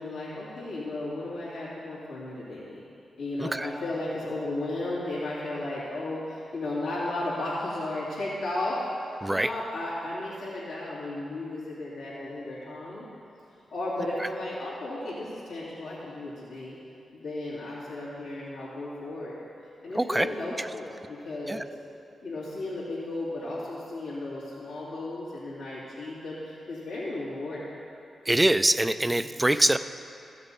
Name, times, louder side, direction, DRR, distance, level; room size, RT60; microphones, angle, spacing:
voice 1, 0.0-2.8 3.2-8.8 9.3-13.1 13.7-16.8 17.1-19.4 19.8-21.7 22.2-27.7 28.8-29.4, left 2 dB, 85° left, -9 dB, 2.6 m, -34 dB
voice 2, 20.0-20.3 21.5-21.6 28.3-29.8, right 1 dB, 15° right, 12 dB, 0.4 m, -23 dB
14.5 x 6.7 x 4.2 m, 2.7 s
supercardioid pair, 50°, 0 cm